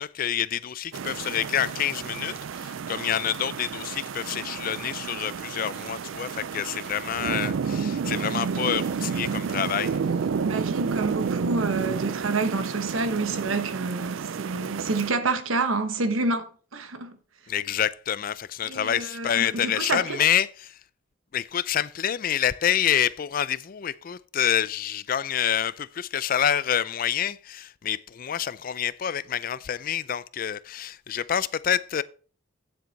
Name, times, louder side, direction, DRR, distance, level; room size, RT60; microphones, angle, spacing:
voice 1, 0.0-10.0 17.5-20.8 21.3-32.0, left 9 dB, 45° left, 0.4 m, -27 dB
sound 1, 0.9-15.1, right 6 dB, 75° right, 0.4 m, -31 dB
voice 2, 10.4-17.2 18.6-20.2, right 3 dB, 90° right, 1.1 m, -28 dB
9.3 x 7.6 x 4.1 m
head